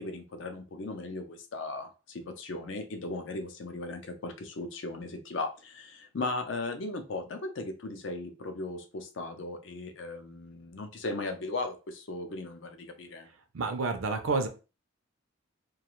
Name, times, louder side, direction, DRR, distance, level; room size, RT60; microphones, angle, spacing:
voice 1, 0.0-13.3, left 2 dB, 65° left, 6 dB, 0.5 m, -37 dB
voice 2, 13.5-14.5, right 3 dB, 80° right, 6 dB, 0.5 m, -29 dB
2.4 x 2.3 x 2.9 m, 0.32 s
head